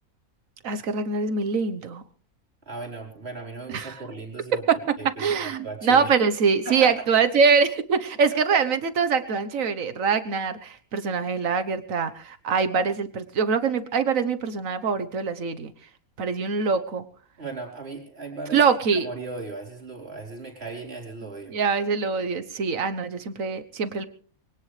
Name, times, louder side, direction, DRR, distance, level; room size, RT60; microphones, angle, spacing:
voice 1, 0.6-2.0 3.7-3.9 4.7-15.7 16.2-17.0 18.5-19.1 21.5-24.1, right 5 dB, 60° right, 10 dB, 1.5 m, -24 dB
voice 2, 2.7-4.6 5.0-6.1 6.6-7.2 8.3-8.6 17.4-18.6 18.9-21.5, right 3 dB, 40° right, 0 dB, 4.6 m, -37 dB
22.5 x 18.0 x 3.3 m, 0.43 s
omnidirectional pair, 1.6 m